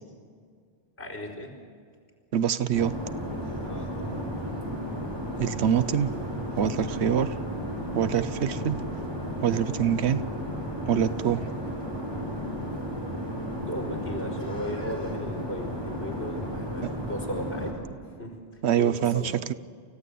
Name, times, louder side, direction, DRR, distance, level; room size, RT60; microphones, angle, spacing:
voice 1, 1.0-1.6 3.6-4.0 13.7-17.8 18.0-19.3, equal, 80° left, 0 dB, 4.7 m, -36 dB
voice 2, 2.3-2.9 5.4-6.1 6.6-7.4 7.9-8.8 9.4-10.2 10.9-11.4 16.8-16.9 18.6-19.2, right 9 dB, 85° right, 13 dB, 1.1 m, -25 dB
sound 1, 2.7-17.7, equal, 20° right, 4.7 m, -33 dB
28.5 x 15.5 x 8.5 m, 2.2 s
omnidirectional pair, 1.1 m